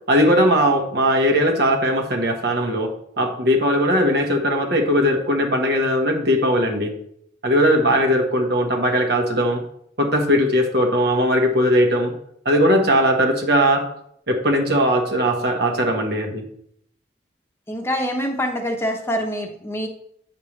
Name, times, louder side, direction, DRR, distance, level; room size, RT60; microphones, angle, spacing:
voice 1, 0.1-6.9 7.4-9.6 10.0-12.1 12.4-13.9 14.3-16.4, equal, 60° right, 3 dB, 1.3 m, -19 dB
voice 2, 17.7-19.9, equal, 15° left, 3 dB, 0.9 m, -25 dB
8.7 x 6.6 x 3.2 m, 0.70 s
head